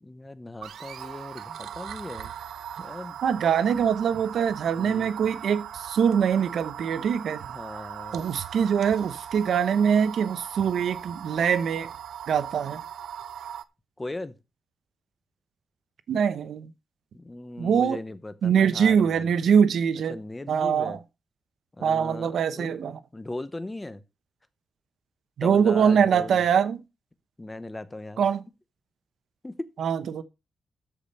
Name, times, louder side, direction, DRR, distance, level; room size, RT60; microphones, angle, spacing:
voice 1, 0.0-2.3 2.8-3.2 4.8-5.1 7.5-8.2 14.0-14.3 17.1-19.3 20.1-21.0 21.8-24.0 25.4-26.5 27.4-28.2 29.4-29.7, left 2 dB, 15° left, 0.8 m, -38 dB
sound 1, 0.6-13.6, right 9 dB, 90° right, 0.6 m, -39 dB
voice 2, 3.2-7.4 8.1-11.9 12.3-12.8 16.1-16.7 17.6-18.0 18.4-20.1 20.5-21.0 21.8-23.0 25.4-26.8 28.2-28.4 29.8-30.2, right 7 dB, 70° right, 0.9 m, -23 dB
13.5 x 5.1 x 5.5 m
wide cardioid pair, 175°, 0 cm